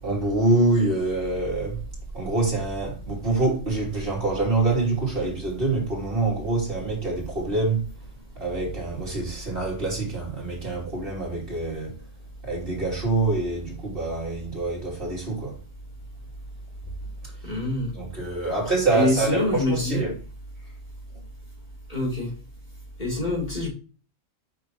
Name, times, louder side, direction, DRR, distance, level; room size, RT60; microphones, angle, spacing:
voice 1, 0.0-1.8 2.1-7.8 8.4-12.0 12.4-15.6 17.9-20.1, right 3 dB, 45° right, 3.3 m, -25 dB
voice 2, 17.4-17.9 18.9-20.0 21.9-22.3 23.0-23.7, left 2 dB, 35° left, 3.6 m, -25 dB
8.8 x 6.0 x 3.0 m
omnidirectional pair, 1.3 m